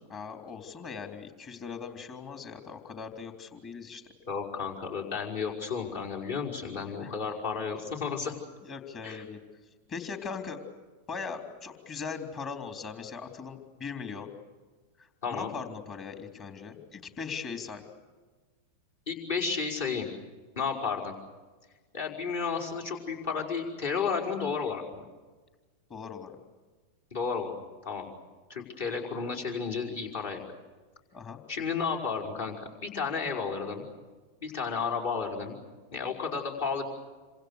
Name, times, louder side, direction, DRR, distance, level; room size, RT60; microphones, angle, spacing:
voice 1, 0.1-4.0 7.0-7.1 8.6-9.4 9.9-10.6 11.1-14.3 15.0-17.8 25.9-26.3 31.1-31.4, left 5 dB, 30° left, 5 dB, 3.6 m, -39 dB
voice 2, 4.3-8.3 9.0-9.2 15.2-15.6 19.1-20.1 20.6-21.1 21.9-25.0 27.1-28.1 28.5-30.4 31.5-33.8 34.4-35.5 35.9-36.9, left 5 dB, 55° left, -1 dB, 5.4 m, -32 dB
28.0 x 26.5 x 6.7 m, 1.3 s
figure-of-eight pair, 90°, 0 cm